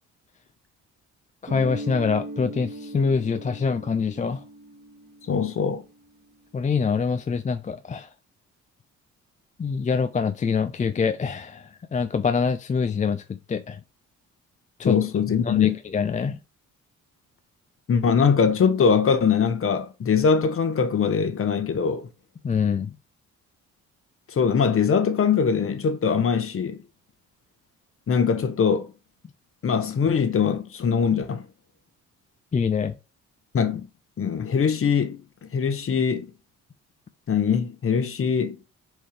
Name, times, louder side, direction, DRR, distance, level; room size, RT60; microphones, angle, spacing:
voice 1, 1.4-4.4 6.5-8.1 9.6-13.2 13.5-13.8 14.8-15.0 15.5-16.4 22.4-22.9 32.5-32.9, left 5 dB, 25° left, 0.5 m, -25 dB
Guitar, 1.5-6.0, right 2 dB, 35° right, 2.4 m, -39 dB
voice 2, 5.3-5.8 14.8-15.8 17.9-22.1 24.3-26.8 28.1-28.9 29.6-31.5 33.5-33.9 34.2-35.2 35.5-36.3 37.3-38.6, left 6 dB, 45° left, 1.2 m, -22 dB
4.6 x 4.3 x 5.0 m
cardioid pair, 90°, 30 cm